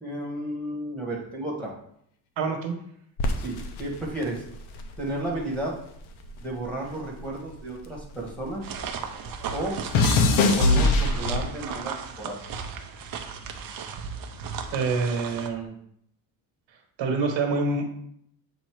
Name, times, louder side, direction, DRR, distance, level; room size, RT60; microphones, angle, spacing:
voice 1, 0.0-1.7 3.4-4.4 5.0-5.8 6.4-8.7 9.5-9.8 10.5-12.4, right 1 dB, 5° left, -4 dB, 1.4 m, -32 dB
voice 2, 2.4-2.7 14.7-15.8 17.0-17.8, right 4 dB, 70° right, 3 dB, 1.3 m, -26 dB
sound 1, 3.2-5.7 6.0-8.6 8.9-11.7 12.4-12.8, left 3 dB, 90° left, 0.9 m, -24 dB
sound 2, 8.6-15.5, right 6 dB, 50° right, 0.7 m, -35 dB
7.6 x 2.7 x 4.5 m, 0.68 s
cardioid pair, 150°, 46 cm